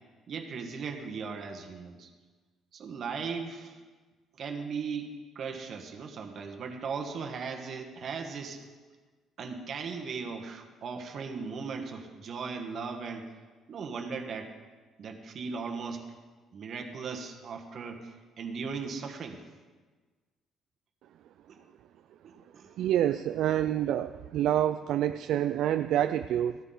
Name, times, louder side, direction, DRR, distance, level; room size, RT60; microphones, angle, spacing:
voice 1, 0.3-2.1 2.7-3.8 4.3-8.6 9.4-13.3 13.7-14.5 15.0-16.1 16.5-19.4 21.5-21.6 22.2-22.7, right 5 dB, 45° right, 4 dB, 1.3 m, -38 dB
voice 2, 22.8-26.6, right 11 dB, 65° right, 10 dB, 0.3 m, -27 dB
14.5 x 13.5 x 3.9 m, 1.4 s
cardioid pair, 160°, 0 cm